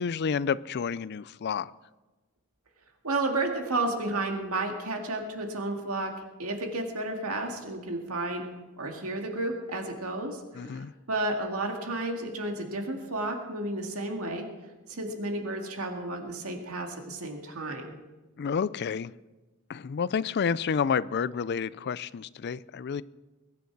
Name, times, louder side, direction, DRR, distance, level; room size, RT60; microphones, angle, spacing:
voice 1, 0.0-1.7 10.6-10.9 18.4-19.1 19.7-23.0, left 6 dB, 50° left, 18 dB, 0.4 m, -30 dB
voice 2, 3.0-6.1 6.4-8.5 8.8-14.5 14.9-17.9, right 2 dB, 85° right, 3 dB, 2.0 m, -32 dB
22.0 x 9.5 x 4.7 m, 1.2 s
head